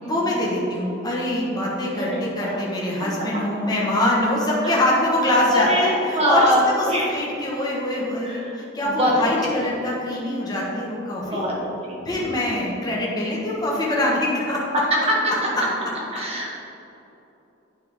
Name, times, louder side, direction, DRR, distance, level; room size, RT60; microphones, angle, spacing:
voice 1, 0.0-11.4 12.0-14.6, left 1 dB, 20° left, -4 dB, 1.3 m, -24 dB
voice 2, 1.9-2.6 4.6-4.8 5.5-7.1 8.2-9.6 11.1-11.6 11.9-12.6 14.7-15.3 16.1-16.6, equal, 30° right, -4 dB, 1.6 m, -24 dB
9.6 x 5.6 x 3.5 m, 2.9 s
head